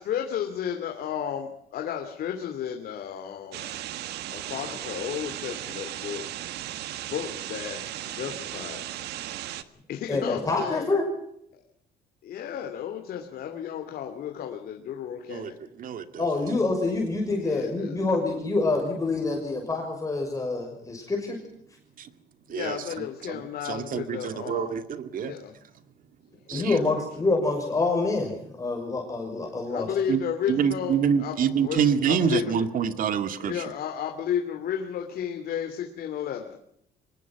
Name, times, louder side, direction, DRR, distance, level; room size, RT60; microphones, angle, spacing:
voice 1, 0.0-3.7 4.3-6.2 7.1-8.8 9.9-10.9 11.5-11.6 12.2-15.6 17.4-18.0 22.5-24.8 25.1-25.6 26.5-27.0 29.7-32.6 33.4-36.6, left 9 dB, 65° left, 4 dB, 2.8 m, -33 dB
sound 1, 3.5-9.6, right 13 dB, 75° right, 1.6 m, -36 dB
voice 2, 10.1-11.0 16.2-21.4 26.5-29.9, left 3 dB, 20° left, 1 dB, 6.2 m, -26 dB
voice 3, 15.8-16.3 22.0-22.1 22.5-22.8 23.3-25.3 26.5-26.8 30.1-30.2 30.5-33.5, right 7 dB, 55° right, 10 dB, 2.2 m, -26 dB
25.0 x 20.0 x 6.1 m, 0.73 s
cardioid pair, 110°, 17 cm